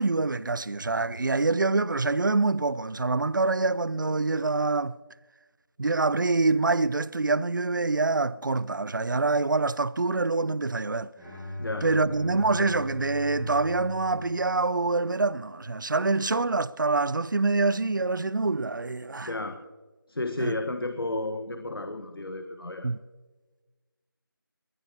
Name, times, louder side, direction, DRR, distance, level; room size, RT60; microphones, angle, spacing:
voice 1, 0.0-4.9 5.8-11.1 11.8-19.3 20.4-20.5 22.8-23.0, right 3 dB, 55° right, 0.5 m, -25 dB
Bowed string instrument, 11.1-15.3, left 1 dB, ahead, 6.0 m, -39 dB
voice 2, 19.2-19.6 20.1-22.9, left 2 dB, 75° left, 1.4 m, -32 dB
20.5 x 19.5 x 2.9 m
figure-of-eight pair, 170°, 12 cm